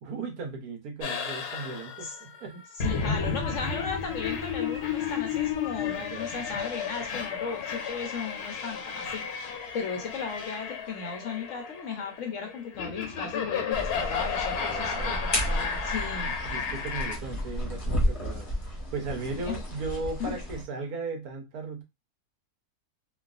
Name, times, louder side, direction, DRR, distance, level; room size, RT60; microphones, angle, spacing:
voice 1, 0.0-2.6 5.8-6.3 14.5-15.2 16.2-21.8, right 3 dB, 75° right, 1.2 m, -37 dB
sound 1, 1.0-17.2, left 6 dB, 90° left, 1.3 m, -33 dB
voice 2, 2.7-16.3 19.3-19.6 20.2-20.3, left 5 dB, 65° left, 0.9 m, -36 dB
sound 2, 13.7-20.6, equal, 25° left, 0.8 m, -32 dB
3.1 x 2.3 x 2.4 m
omnidirectional pair, 1.6 m